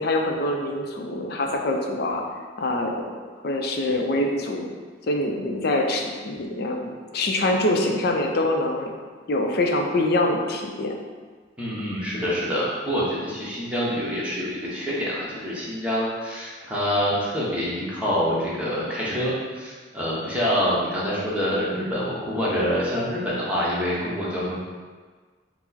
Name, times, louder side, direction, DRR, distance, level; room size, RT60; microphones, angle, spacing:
voice 1, 0.0-2.2 2.6-3.0 3.4-4.7 5.1-8.9 9.3-10.9, left 1 dB, 55° left, 2 dB, 0.4 m, -24 dB
voice 2, 11.6-24.6, equal, 5° right, -7 dB, 0.8 m, -26 dB
4.5 x 2.0 x 4.1 m, 1.5 s
head